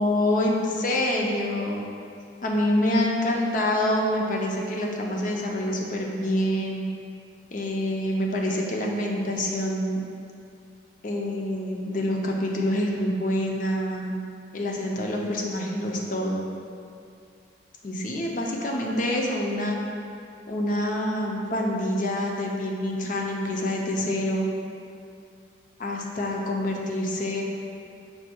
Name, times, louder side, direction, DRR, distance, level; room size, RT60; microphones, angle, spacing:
voice 1, 0.0-1.8 2.4-6.8 7.5-10.0 11.0-14.1 14.5-16.5 17.8-19.8 20.5-24.5 25.8-27.4, left 1 dB, 45° left, -1 dB, 0.5 m, -26 dB
5.4 x 2.2 x 4.3 m, 2.4 s
head